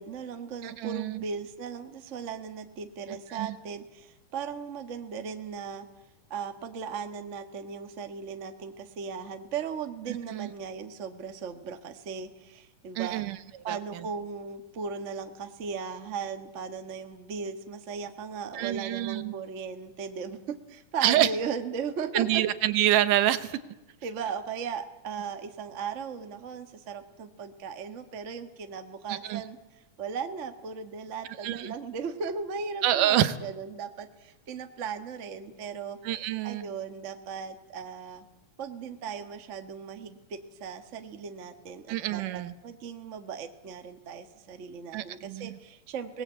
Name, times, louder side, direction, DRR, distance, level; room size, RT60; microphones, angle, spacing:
voice 1, 0.0-5.9 6.3-13.2 13.6-22.4 24.0-29.6 30.0-36.0 36.4-38.2 38.6-46.2, right 6 dB, 45° right, 7 dB, 1.0 m, -37 dB
voice 2, 0.6-1.2 3.3-3.6 10.3-10.5 13.0-13.4 13.7-14.0 18.5-19.3 21.0-21.3 22.1-23.6 29.1-29.4 31.4-31.7 32.8-33.3 36.0-36.7 41.9-42.5 44.9-45.6, right 13 dB, 90° right, 13 dB, 2.6 m, -27 dB
23.5 x 19.0 x 8.2 m, 0.98 s
omnidirectional pair, 3.6 m